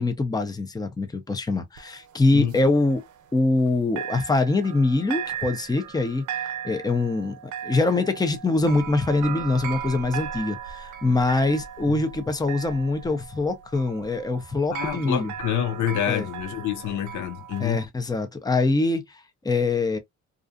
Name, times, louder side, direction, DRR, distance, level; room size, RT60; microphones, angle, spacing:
voice 1, 0.0-3.0 3.3-6.2 6.6-7.3 7.6-15.3 16.1-16.2 17.6-20.0, left 3 dB, 15° left, 0.6 m, -24 dB
sound 1, 1.8-3.7 4.0-17.9, right 9 dB, 80° right, 0.6 m, -37 dB
voice 2, 14.7-17.8, left 10 dB, 75° left, 0.6 m, -27 dB
2.5 x 2.3 x 2.5 m
cardioid pair, 90°, 30 cm